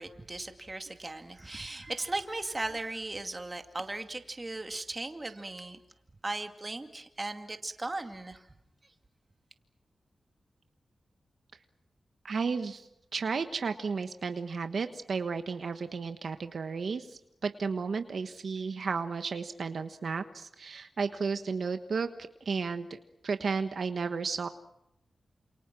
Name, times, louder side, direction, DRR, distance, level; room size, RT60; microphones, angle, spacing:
voice 1, 0.0-5.8 6.2-8.5, right 2 dB, 25° right, 6 dB, 2.4 m, -37 dB
voice 2, 12.2-22.1 22.4-24.5, right 5 dB, 70° right, 8 dB, 1.3 m, -33 dB
29.0 x 28.0 x 6.2 m, 0.83 s
wide cardioid pair, 90°, 0 cm